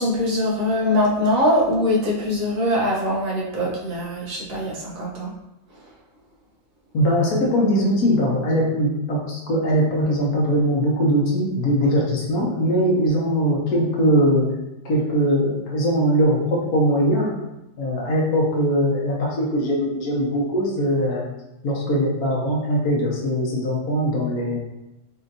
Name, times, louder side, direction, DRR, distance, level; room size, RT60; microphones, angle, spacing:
voice 1, 0.0-5.3, left 1 dB, 65° right, -5 dB, 1.3 m, -22 dB
voice 2, 6.9-14.5 14.8-17.4 17.8-21.2 21.6-24.6, equal, 75° left, -3 dB, 1.3 m, -21 dB
4.4 x 2.8 x 2.6 m, 0.94 s
omnidirectional pair, 1.6 m